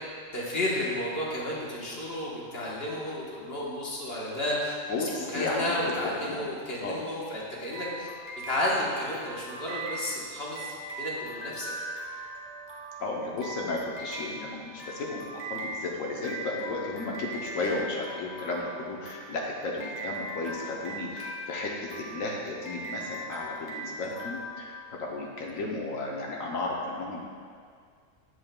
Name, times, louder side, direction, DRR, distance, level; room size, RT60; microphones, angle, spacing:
voice 1, 0.3-4.7 5.1-8.1 8.5-11.7, left 1 dB, 50° left, -5 dB, 1.3 m, -32 dB
voice 2, 4.9-6.0 6.2-6.4 6.8-7.0 13.0-27.2, left 2 dB, 75° left, -2 dB, 1.1 m, -34 dB
sound 1, 7.7-25.3, right 1 dB, 10° right, 0.7 m, -40 dB
7.7 x 7.2 x 2.2 m, 2.1 s
omnidirectional pair, 1.4 m